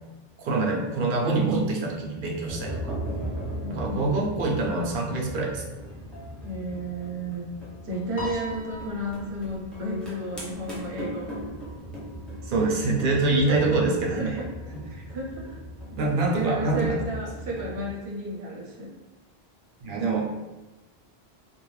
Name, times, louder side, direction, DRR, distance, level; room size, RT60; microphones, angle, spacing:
voice 1, 0.4-3.0 3.7-5.6 12.4-14.4 15.9-17.0 19.8-20.3, right 3 dB, 60° right, -1 dB, 0.7 m, -25 dB
sound 1, 2.5-17.9, equal, ahead, 0.3 m, -38 dB
voice 2, 3.6-4.3 6.4-7.5 7.8-11.4 13.4-14.5 15.1-15.6 16.3-18.9, right 1 dB, 90° right, -2 dB, 0.9 m, -33 dB
Piano, 8.2-10.7, equal, 60° left, 0.8 m, -40 dB
2.3 x 2.2 x 3.0 m, 1.1 s
omnidirectional pair, 1.1 m